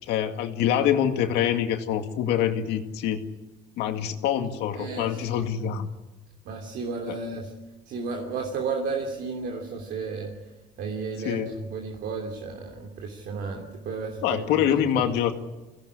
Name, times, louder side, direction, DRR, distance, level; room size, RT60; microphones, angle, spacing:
voice 1, 0.0-3.2 3.8-5.9 7.1-7.2 11.2-11.5 14.2-15.3, left 10 dB, 90° left, 5 dB, 2.2 m, -25 dB
voice 2, 4.7-5.4 6.4-7.5 7.9-10.3 10.8-14.7 14.9-15.0, right 4 dB, 70° right, 1 dB, 3.1 m, -33 dB
23.0 x 17.0 x 9.9 m, 1.2 s
cardioid pair, 110°, 17 cm